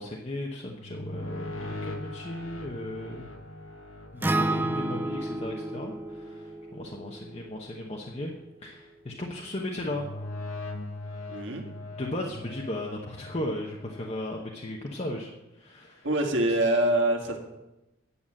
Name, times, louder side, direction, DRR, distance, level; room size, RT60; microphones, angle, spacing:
voice 1, 0.0-3.3 4.1-8.3 8.6-10.1 11.2-11.3 12.0-16.1, left 1 dB, 30° left, -1 dB, 0.9 m, -36 dB
sound 1, 0.7-7.8 9.8-14.2, left 2 dB, 80° left, 1.4 m, -41 dB
Acoustic guitar, 4.2-8.5, right 2 dB, 10° right, 0.3 m, -32 dB
voice 2, 11.3-11.6 16.0-17.4, right 1 dB, 60° right, 2 dB, 1.7 m, -25 dB
9.9 x 7.0 x 7.5 m, 0.96 s
head